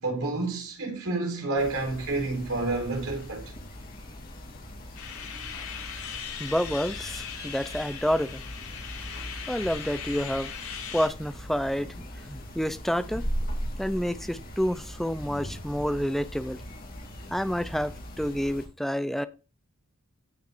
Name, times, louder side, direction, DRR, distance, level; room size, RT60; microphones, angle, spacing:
voice 1, 0.0-3.5, right 3 dB, 75° right, 3.9 m, -29 dB
sound 1, 1.6-18.7, equal, 40° left, 2.8 m, -39 dB
sound 2, 4.9-11.1, left 7 dB, 80° left, 5.5 m, -39 dB
voice 2, 6.4-8.4 9.5-10.5 10.9-13.2 13.8-16.6 17.3-17.9 18.2-19.3, equal, ahead, 0.4 m, -29 dB
16.5 x 5.8 x 2.6 m
head